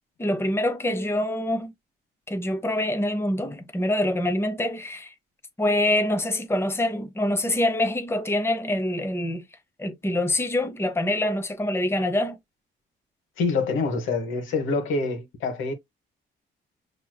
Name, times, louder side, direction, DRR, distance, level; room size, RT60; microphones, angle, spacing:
voice 1, 0.2-1.7 2.3-5.1 5.6-9.4 9.8-12.4, left 1 dB, 10° left, 0.8 m, -25 dB
voice 2, 13.4-15.7, left 4 dB, 80° left, 1.4 m, -26 dB
6.1 x 2.9 x 2.2 m
cardioid pair, 90°, 20 cm